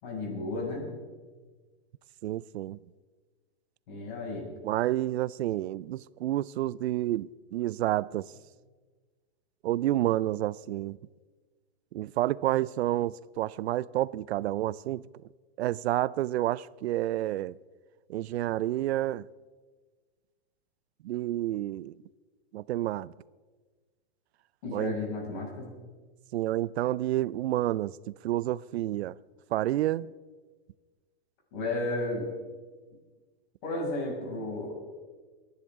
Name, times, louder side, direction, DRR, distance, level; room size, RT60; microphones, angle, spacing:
voice 1, 0.0-0.8 3.9-4.5 24.6-25.7 31.5-32.3 33.6-34.8, left 2 dB, 50° left, 6.2 m, -33 dB
voice 2, 2.2-2.8 4.6-8.3 9.6-11.0 11.9-15.0 15.6-17.6 18.1-19.3 21.0-22.0 22.5-23.1 24.7-25.0 26.3-28.0 28.2-29.2 29.5-30.1, right 14 dB, 85° right, 0.5 m, -29 dB
29.5 x 10.5 x 3.7 m
supercardioid pair, 155°, 31 cm